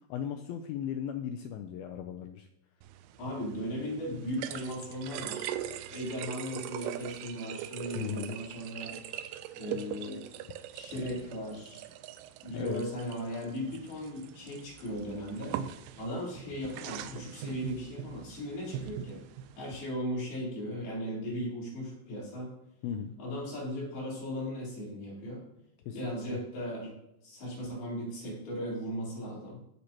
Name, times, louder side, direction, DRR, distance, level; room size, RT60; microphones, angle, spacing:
voice 1, 0.1-2.5 8.0-8.3 12.5-12.8 22.8-23.1 25.9-26.4, left 9 dB, 85° left, 6 dB, 2.1 m, -37 dB
sound 1, 2.8-19.8, right 10 dB, 85° right, 2.7 m, -42 dB
voice 2, 3.2-5.5 5.9-9.0 9.6-10.3 10.7-11.8 12.4-15.6 16.0-19.2 19.6-22.5 23.2-25.4 25.9-26.9 27.2-29.6, equal, 65° left, -6 dB, 5.7 m, -37 dB
19.5 x 6.6 x 2.9 m, 0.80 s
omnidirectional pair, 4.8 m